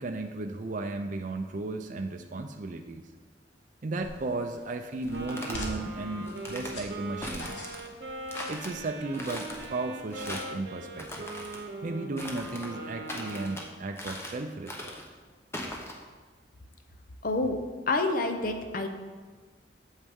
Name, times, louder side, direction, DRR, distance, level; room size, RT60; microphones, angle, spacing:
voice 1, 0.0-3.0 3.8-7.6 8.5-11.3 11.8-15.0, right 2 dB, 45° right, 5 dB, 0.4 m, -35 dB
sound 1, 4.0-10.2, left 1 dB, 85° left, 1.5 m, -45 dB
sound 2, 5.0-5.7 6.3-6.7 7.2-7.9 8.3-8.7 9.1-9.7 10.1-10.6 10.9-11.6 12.2-12.7 13.1-13.7 14.0-14.4 14.7-15.1 15.5-15.9, left 1 dB, 15° left, 0.9 m, -40 dB
Wind instrument woodwind instrument, 5.1-13.7, right 2 dB, 65° right, 0.9 m, -41 dB
voice 2, 17.2-17.6 17.9-18.9, left 2 dB, 50° left, 6 dB, 0.7 m, -27 dB
8.2 x 7.3 x 3.6 m, 1.5 s
head